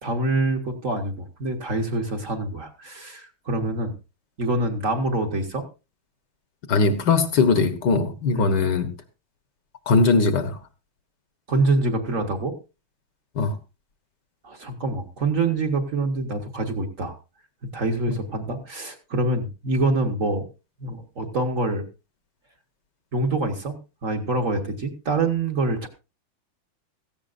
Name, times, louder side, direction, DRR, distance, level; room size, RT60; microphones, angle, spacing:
voice 1, 0.0-3.9 4.4-5.6 8.3-8.5 11.5-12.5 14.4-17.2 17.7-20.4 20.8-21.9 23.1-25.9, right 2 dB, 45° right, 4 dB, 1.5 m, -25 dB
voice 2, 6.7-8.9 9.9-10.6 13.3-13.6 18.1-18.2, left 4 dB, 60° left, 10 dB, 1.7 m, -20 dB
16.5 x 14.0 x 2.5 m, 0.29 s
omnidirectional pair, 2.2 m